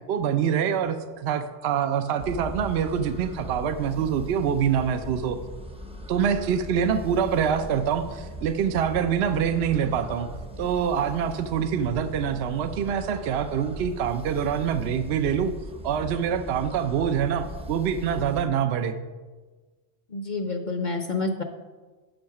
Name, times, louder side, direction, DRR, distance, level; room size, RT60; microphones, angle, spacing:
voice 1, 0.1-5.4 6.1-10.3 10.6-15.5 15.8-19.0, right 8 dB, 70° right, 9 dB, 0.8 m, -25 dB
sound 1, 2.2-18.4, equal, 5° right, 0.5 m, -39 dB
voice 2, 20.1-21.4, left 3 dB, 50° left, 5 dB, 0.8 m, -28 dB
7.8 x 6.3 x 5.8 m, 1.3 s
omnidirectional pair, 1.2 m